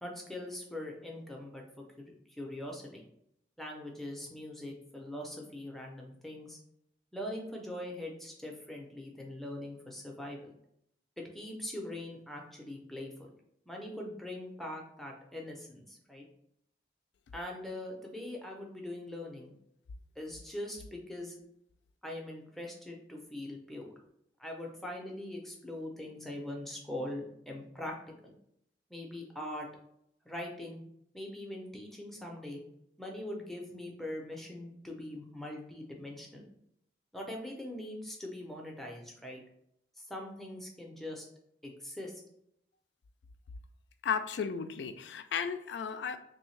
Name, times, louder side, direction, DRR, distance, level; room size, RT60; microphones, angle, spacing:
voice 1, 0.0-3.0 3.6-6.6 7.1-10.5 11.2-13.3 13.7-16.3 17.3-19.5 20.2-21.3 22.0-23.9 24.4-28.0 28.2-28.3 28.9-29.7 30.2-30.8 31.1-32.6 33.0-36.5 37.1-39.4 40.0-41.3 41.6-42.2, left 1 dB, ahead, 0 dB, 0.5 m, -42 dB
voice 2, 44.0-46.2, left 6 dB, 85° left, 9 dB, 0.3 m, -34 dB
3.4 x 2.7 x 3.1 m, 0.75 s
head